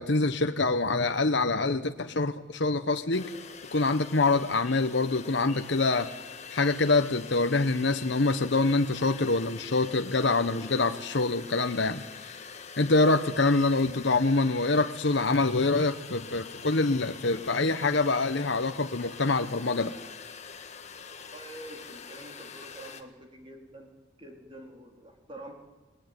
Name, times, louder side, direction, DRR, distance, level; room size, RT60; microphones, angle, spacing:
voice 1, 0.0-3.3 3.7-6.1 6.5-12.4 12.8-19.9, left 3 dB, 60° left, 7 dB, 1.0 m, -25 dB
sound 1, 3.1-23.0, left 6 dB, 35° left, 1.6 m, -45 dB
voice 2, 21.2-23.9 24.2-25.6, right 1 dB, 25° right, 2 dB, 3.9 m, -46 dB
28.5 x 20.5 x 9.7 m, 1.2 s
head